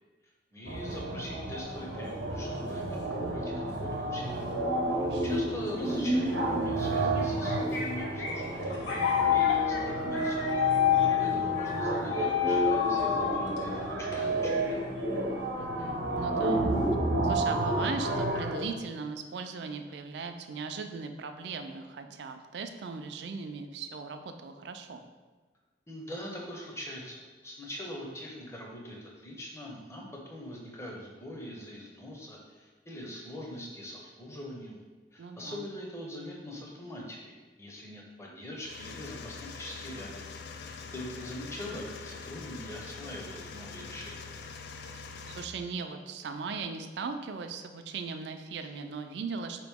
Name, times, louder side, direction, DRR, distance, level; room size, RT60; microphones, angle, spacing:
voice 1, 0.5-4.5 4.9-8.7 9.0-10.7 11.2-14.8 25.9-34.8 35.1-40.3 40.7-44.3, left 1 dB, 15° left, -2 dB, 0.6 m, -43 dB
sound 1, 0.7-18.7, right 2 dB, 85° right, 0.9 m, -31 dB
voice 2, 4.9-5.6 15.6-16.7 17.2-25.1 35.2-35.6 44.9-49.6, right 4 dB, 70° right, 7 dB, 0.4 m, -38 dB
sound 2, 7.2-14.7, left 9 dB, 85° left, 0.8 m, -29 dB
sound 3, 38.6-45.5, left 5 dB, 60° left, 0.3 m, -44 dB
4.8 x 3.0 x 3.5 m, 1.3 s
head